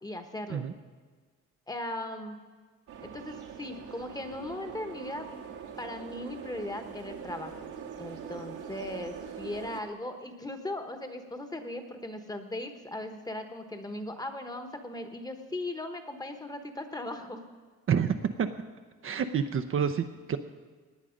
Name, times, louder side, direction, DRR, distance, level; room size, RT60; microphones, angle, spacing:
voice 1, 0.0-0.7 1.7-2.4 3.0-5.3 5.8-7.6 8.0-17.4, left 1 dB, 10° left, 7 dB, 1.2 m, -38 dB
sound 1, 2.9-9.8, right 7 dB, 80° right, 1.8 m, -43 dB
voice 2, 17.9-18.5 19.0-20.4, right 7 dB, 45° right, 7 dB, 0.7 m, -28 dB
18.0 x 9.7 x 5.2 m, 1.5 s
cardioid pair, 145°, 30 cm